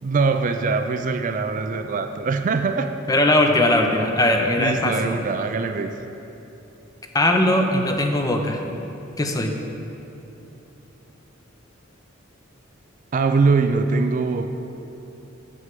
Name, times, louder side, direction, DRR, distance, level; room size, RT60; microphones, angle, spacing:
voice 1, 0.0-2.9 4.6-5.9 13.1-14.5, right 4 dB, 40° right, 7 dB, 0.4 m, -22 dB
voice 2, 3.1-5.1 7.1-8.6 9.2-9.5, left 1 dB, 20° left, 3 dB, 0.6 m, -19 dB
6.4 x 6.3 x 7.4 m, 2.9 s
head